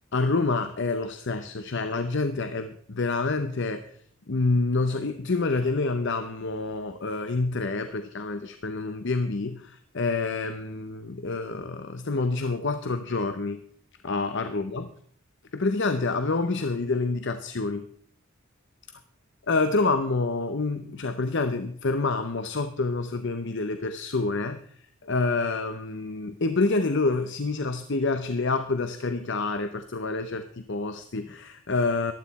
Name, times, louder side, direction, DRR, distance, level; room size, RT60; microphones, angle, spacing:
voice 1, 0.1-3.9 4.3-13.6 14.0-14.9 15.5-17.9 19.5-24.6 25.0-32.1, left 3 dB, 55° left, 9 dB, 0.8 m, -27 dB
15.0 x 11.5 x 4.2 m, 0.62 s
head